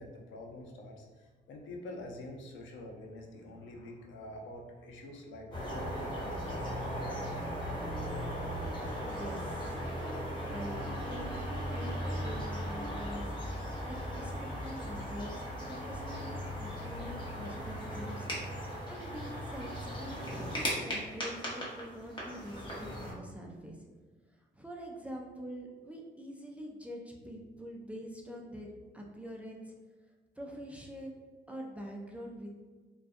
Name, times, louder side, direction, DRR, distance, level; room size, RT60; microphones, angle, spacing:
voice 1, 0.0-8.3, left 1 dB, 75° left, 1 dB, 0.5 m, -47 dB
sound 1, 5.5-23.1, equal, 25° left, 0.9 m, -37 dB
voice 2, 9.0-9.8 10.4-13.3 13.8-23.8 24.5-29.7 30.4-31.2 31.5-32.5, equal, 5° right, -1 dB, 0.4 m, -45 dB
2.3 x 2.2 x 2.5 m, 1.4 s
cardioid pair, 90°, 20 cm